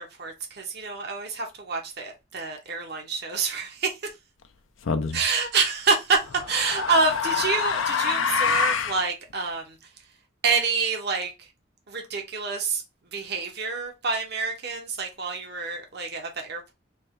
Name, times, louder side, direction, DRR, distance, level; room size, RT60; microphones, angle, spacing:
voice 1, 0.0-4.0 5.1-9.8 10.4-11.5 11.9-12.8 13.1-16.7, right 4 dB, 55° right, 0.9 m, -27 dB
sound 1, 4.9-5.2 6.2-9.0, left 6 dB, 80° left, 0.5 m, -26 dB
3.3 x 2.3 x 4.3 m
head